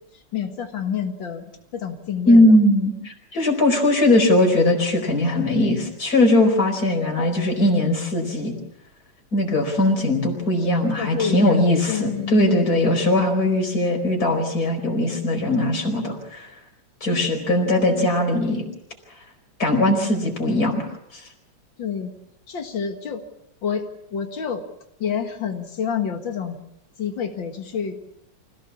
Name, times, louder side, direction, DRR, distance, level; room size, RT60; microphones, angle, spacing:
voice 1, 0.1-1.5 1.7-2.6 11.0-13.0 17.1-18.1 21.8-22.1 22.5-23.2 23.6-23.8 24.1-24.6 25.0-26.6 27.0-27.9, left 7 dB, 80° left, 4 dB, 2.5 m, -29 dB
voice 2, 2.3-8.5 9.3-16.5 17.0-18.6 19.6-20.9 21.1-21.2, left 1 dB, 50° left, 4 dB, 5.1 m, -19 dB
26.0 x 17.0 x 7.2 m, 0.81 s
omnidirectional pair, 2.0 m